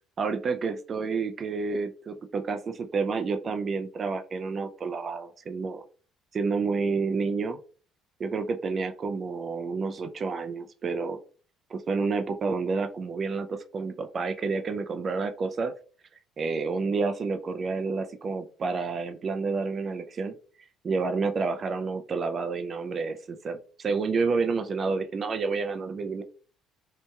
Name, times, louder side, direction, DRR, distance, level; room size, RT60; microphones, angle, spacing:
voice 1, 0.2-5.8 6.3-7.6 8.2-11.2 11.7-15.7 16.4-20.3 20.8-26.2, right 4 dB, 40° right, 8 dB, 0.3 m, -29 dB
4.2 x 2.8 x 2.2 m, 0.40 s
cardioid pair, 105°, 0 cm